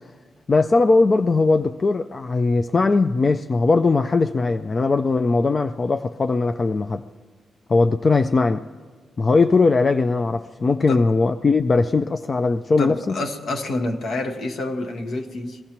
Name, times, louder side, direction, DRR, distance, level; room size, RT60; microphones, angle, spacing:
voice 1, 0.5-7.0 7.7-8.6 9.2-13.2, left 3 dB, 35° left, 0.3 m, -19 dB
voice 2, 12.8-15.6, left 2 dB, 70° left, 1.1 m, -28 dB
22.0 x 15.0 x 2.9 m
cardioid pair, 100°, 0 cm